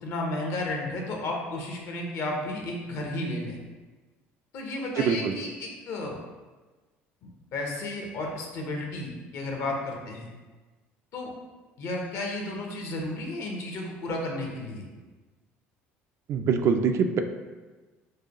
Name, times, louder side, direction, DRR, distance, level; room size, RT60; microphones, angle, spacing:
voice 1, 0.0-3.6 4.5-6.2 7.5-10.3 11.1-11.3 11.8-14.9, left 2 dB, 65° left, 0 dB, 0.8 m, -33 dB
voice 2, 5.0-5.3 16.3-17.2, right 6 dB, 55° right, 7 dB, 0.3 m, -24 dB
4.7 x 2.2 x 2.9 m, 1.3 s
supercardioid pair, 75°, 6 cm